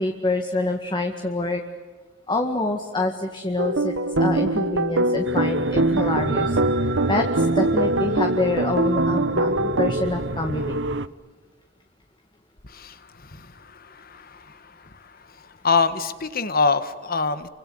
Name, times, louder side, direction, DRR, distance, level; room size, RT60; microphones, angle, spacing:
voice 1, 0.0-1.6 2.3-6.6 7.1-10.8, left 2 dB, 25° left, 4 dB, 2.0 m, -26 dB
sound 1, 3.6-9.9, right 1 dB, 85° right, 1.6 m, -23 dB
sound 2, 5.2-11.1, right 3 dB, 65° right, 0.9 m, -29 dB
voice 2, 13.2-14.6 15.6-17.5, left 4 dB, 50° left, 11 dB, 1.7 m, -25 dB
29.0 x 25.0 x 8.0 m, 1.4 s
head